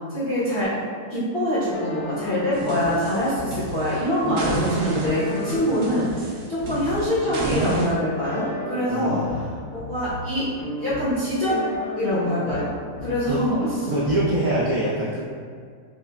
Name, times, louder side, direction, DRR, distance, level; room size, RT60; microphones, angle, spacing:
voice 1, 0.1-0.8 1.1-9.2 9.7-11.7 12.0-12.7 13.0-13.7, left 1 dB, 45° left, -12 dB, 0.8 m, -24 dB
sound 1, 1.7-14.6, left 1 dB, 70° left, 1.4 m, -35 dB
sound 2, 2.5-4.0 4.4-7.9, right 3 dB, 65° right, 1.1 m, -30 dB
voice 2, 8.9-9.7 13.3-13.5 13.9-15.2, right 1 dB, 80° right, -8 dB, 0.7 m, -25 dB
5.9 x 2.1 x 2.2 m, 2.1 s
omnidirectional pair, 2.2 m